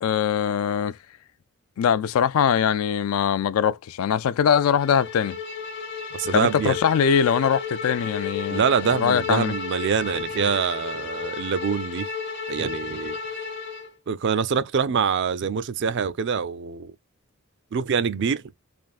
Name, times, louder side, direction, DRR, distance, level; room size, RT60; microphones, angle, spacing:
voice 1, 0.0-1.0 1.8-5.4 6.3-8.6 8.9-9.5, left 8 dB, 75° left, 0.3 m, -22 dB
Bowed string instrument, 4.8-13.9, left 5 dB, 55° left, 0.9 m, -33 dB
voice 2, 6.1-6.8 8.5-12.1 12.5-13.2 14.1-16.9 17.7-18.4, right 6 dB, 55° right, 0.4 m, -25 dB
3.4 x 2.4 x 2.4 m
head